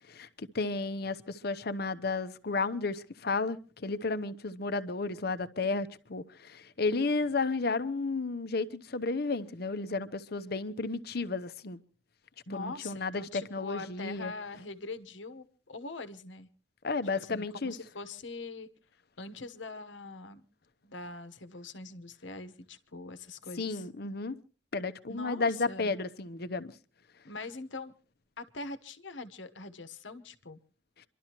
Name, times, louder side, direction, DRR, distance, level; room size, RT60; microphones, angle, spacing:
voice 1, 0.5-11.8 12.5-14.3 16.8-17.7 23.6-24.4 24.7-26.7, left 3 dB, 55° left, 0.8 m, -32 dB
voice 2, 12.5-16.5 17.2-18.7 19.2-20.4 20.8-23.9 25.1-25.9 27.2-27.9 28.4-30.6, left 3 dB, 90° left, 1.1 m, -43 dB
27.5 x 12.0 x 3.0 m
head